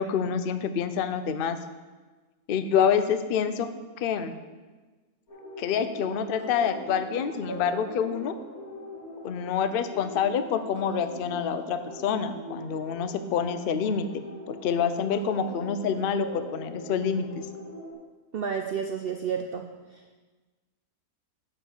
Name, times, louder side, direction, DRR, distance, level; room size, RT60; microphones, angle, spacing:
voice 1, 0.0-1.6 2.5-3.7 4.0-4.3 5.6-8.3 9.2-14.1 14.5-17.4, left 7 dB, 90° left, 10 dB, 0.4 m, -27 dB
sound 1, 5.3-17.9, equal, 65° left, 2.6 m, -41 dB
voice 2, 18.3-19.7, right 6 dB, 75° right, 4 dB, 0.5 m, -30 dB
7.1 x 5.5 x 7.2 m, 1.3 s
omnidirectional pair, 1.6 m